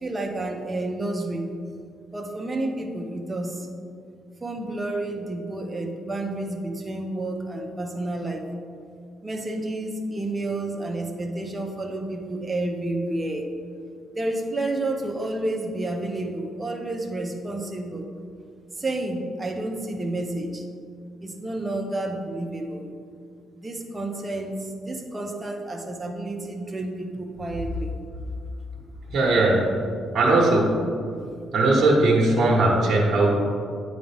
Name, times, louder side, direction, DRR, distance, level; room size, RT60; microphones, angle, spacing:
voice 1, 0.0-1.5 2.1-3.7 4.4-8.5 9.2-13.5 14.1-18.1 18.7-20.7 21.2-22.8 23.5-27.9, right 2 dB, 20° right, 2 dB, 0.8 m, -30 dB
voice 2, 29.1-29.7 30.1-30.9 31.5-33.3, right 2 dB, 50° right, -4 dB, 1.2 m, -19 dB
9.1 x 3.8 x 3.5 m, 2.3 s
cardioid pair, 90°, 0 cm